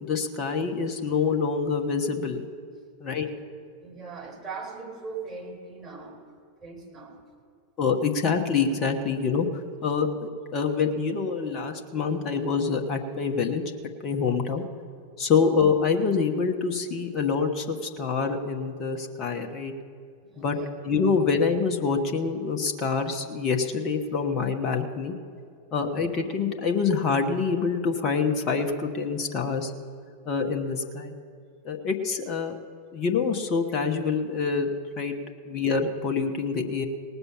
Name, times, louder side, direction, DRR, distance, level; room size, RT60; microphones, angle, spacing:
voice 1, 0.0-2.4 3.0-3.3 7.8-9.5 9.8-10.1 10.5-14.6 15.2-19.7 20.4-20.6 20.8-25.1 25.7-29.7 30.3-31.1 31.6-32.6 32.9-34.7 35.0-35.2 35.4-36.9, left 5 dB, 30° left, 3 dB, 1.1 m, -26 dB
voice 2, 3.8-6.2 6.6-7.2 17.0-17.1 20.2-20.7, right 4 dB, 20° right, -3 dB, 4.2 m, -40 dB
18.5 x 6.8 x 7.2 m, 2.4 s
figure-of-eight pair, 90°, 0 cm